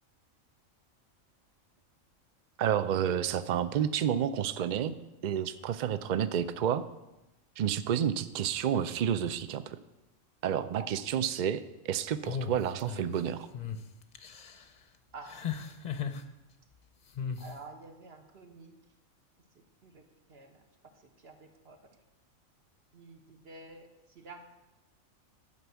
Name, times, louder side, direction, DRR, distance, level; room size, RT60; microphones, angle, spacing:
voice 1, 2.6-4.9 5.2-6.8 7.6-9.8 10.4-13.5, right 9 dB, 75° right, 12 dB, 0.4 m, -30 dB
sound 1, 12.2-13.1 13.5-13.8 14.1-14.6 15.3-16.2 17.1-17.5, left 7 dB, 40° left, 0.7 m, -36 dB
voice 2, 15.1-15.5 17.4-18.8 19.5-20.6 20.9-22.0 22.9-24.4, right 3 dB, 50° right, 4 dB, 1.5 m, -50 dB
11.5 x 5.3 x 8.1 m, 0.97 s
omnidirectional pair, 1.4 m